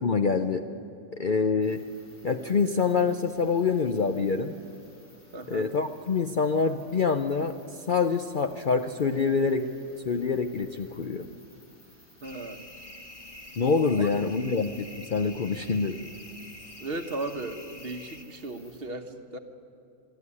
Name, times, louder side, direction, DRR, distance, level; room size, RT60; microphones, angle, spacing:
voice 1, 0.0-0.6 1.2-1.8 2.2-4.5 5.5-7.5 7.9-9.7 10.0-11.3 13.6-16.0, left 5 dB, 50° left, 7 dB, 0.7 m, -26 dB
sound 1, 1.6-18.8, left 1 dB, 70° left, 5.7 m, -57 dB
voice 2, 5.3-5.7 12.2-12.7 14.0-14.2 16.8-19.4, right 2 dB, 45° right, 7 dB, 1.3 m, -36 dB
sound 2, 12.2-18.2, left 1 dB, 25° left, 1.3 m, -46 dB
26.5 x 11.5 x 9.8 m, 2.6 s
omnidirectional pair, 1.5 m